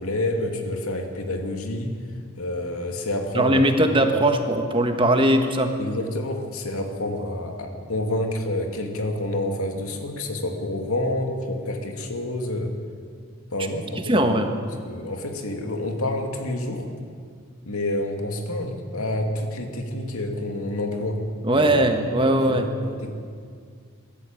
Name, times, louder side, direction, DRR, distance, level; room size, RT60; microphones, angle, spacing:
voice 1, 0.0-2.0 2.4-3.6 4.0-4.2 5.8-12.8 13.5-14.5 14.8-16.9 17.7-21.3 21.5-21.8 22.5-23.1, left 1 dB, 80° left, 4 dB, 2.4 m, -28 dB
voice 2, 3.3-5.7 14.0-14.5 21.4-22.7, right 1 dB, 25° right, 6 dB, 1.4 m, -20 dB
22.0 x 13.5 x 9.1 m, 2.1 s
head